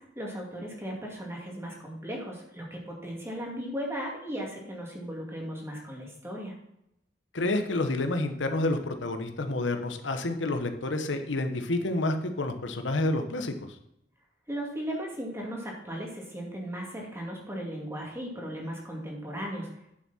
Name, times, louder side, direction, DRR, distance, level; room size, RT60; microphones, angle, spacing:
voice 1, 0.2-6.5 14.5-19.7, equal, 15° right, -2 dB, 2.5 m, -36 dB
voice 2, 7.3-13.7, left 2 dB, 85° left, 7 dB, 1.0 m, -29 dB
9.1 x 7.3 x 4.3 m, 0.81 s
head